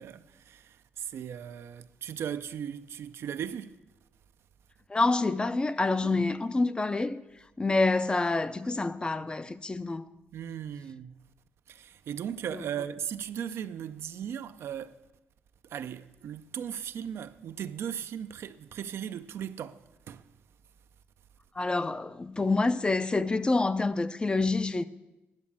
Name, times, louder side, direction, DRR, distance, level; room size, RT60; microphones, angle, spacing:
voice 1, 0.0-3.8 6.0-6.2 10.3-11.2 11.7-15.0 15.7-20.2 22.4-22.5, right 9 dB, 70° right, 0.5 m, -37 dB
voice 2, 4.9-7.2 7.6-10.1 12.5-12.6 21.6-24.8, left 3 dB, 20° left, 0.5 m, -27 dB
10.5 x 7.2 x 7.1 m
cardioid pair, 95°, 4 cm